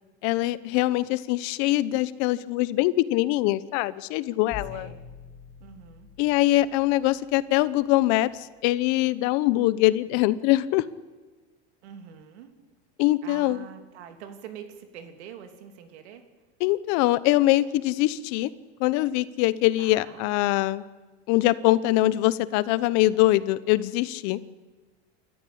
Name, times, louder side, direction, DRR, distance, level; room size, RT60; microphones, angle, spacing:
voice 1, 0.2-4.9 6.2-10.8 13.0-13.7 16.6-18.5 18.8-20.8 21.3-24.4, left 16 dB, 60° left, 17 dB, 1.0 m, -23 dB
sound 1, 4.5-8.4, left 6 dB, 15° left, 2.6 m, -46 dB
voice 2, 4.7-5.0 5.6-6.1 11.8-12.5 13.2-16.3 19.8-20.2, right 8 dB, 90° right, 7 dB, 3.0 m, -45 dB
27.5 x 14.0 x 8.7 m, 1.3 s
supercardioid pair, 140°, 32 cm